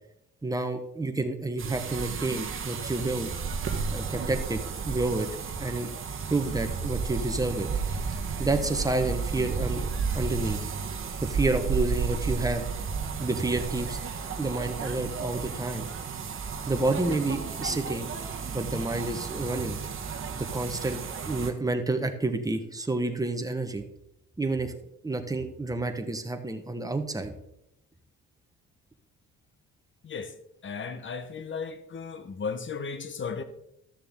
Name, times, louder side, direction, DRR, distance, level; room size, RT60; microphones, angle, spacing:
voice 1, 0.4-3.3 3.9-5.3 5.6-5.9 6.3-7.7 8.4-9.9 10.1-10.6 11.2-12.7 13.2-14.0 14.4-15.9 16.7-18.1 18.5-19.8 20.3-21.0 21.3-23.8 24.4-24.7 25.0-27.3, right 2 dB, 10° right, 6 dB, 1.2 m, -29 dB
sound 1, 1.6-21.5, right 5 dB, 45° right, 1.3 m, -33 dB
voice 2, 30.6-33.4, left 5 dB, 40° left, 11 dB, 1.1 m, -35 dB
13.0 x 6.8 x 3.7 m, 0.80 s
cardioid pair, 90°, 30 cm